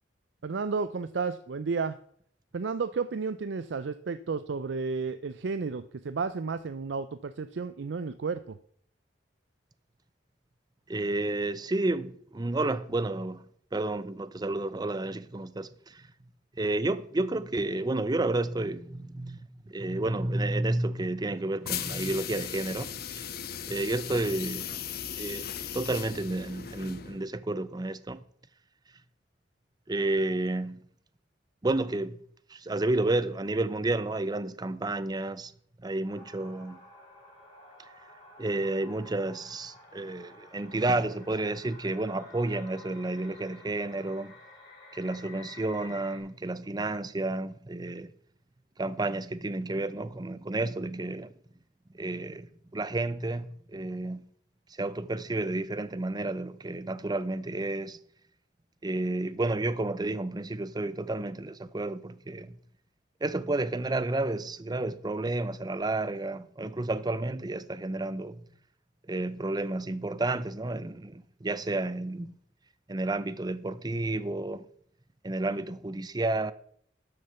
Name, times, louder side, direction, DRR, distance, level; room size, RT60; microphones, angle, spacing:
voice 1, 0.4-2.0 2.5-8.6, right 4 dB, 85° right, 0.5 m, -32 dB
voice 2, 10.9-13.4 13.7-16.1 16.6-22.9 23.7-24.7 25.1-25.5 25.7-28.2 29.9-30.8 31.6-32.2 32.5-35.5 35.8-36.8 38.4-44.3 44.9-48.1 48.8-51.3 51.9-54.2 54.7-58.0 58.8-62.6 63.2-68.4 69.1-72.3 72.9-74.6 75.2-76.5, right 2 dB, 25° right, 0.6 m, -31 dB
sound 1, 21.6-27.3, left 9 dB, 60° left, 0.8 m, -37 dB
sound 2, 36.1-46.2, left 2 dB, 25° left, 4.8 m, -52 dB
12.5 x 6.6 x 5.6 m
head